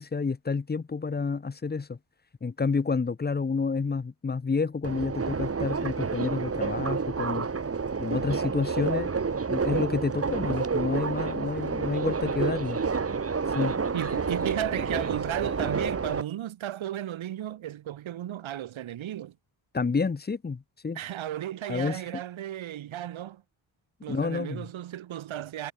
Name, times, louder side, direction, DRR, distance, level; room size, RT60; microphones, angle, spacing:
voice 1, 0.0-2.0 2.4-7.5 8.0-9.1 9.5-12.8 13.5-13.7 19.7-21.0 21.7-22.0 24.1-24.7, left 4 dB, 20° left, 0.8 m, -29 dB
Subway metro underground, 4.8-16.2, right 5 dB, 30° right, 1.7 m, -29 dB
voice 2, 13.9-19.4 20.9-23.4 24.0-25.7, right 12 dB, 90° right, 1.5 m, -34 dB
wide cardioid pair, 110°, 46 cm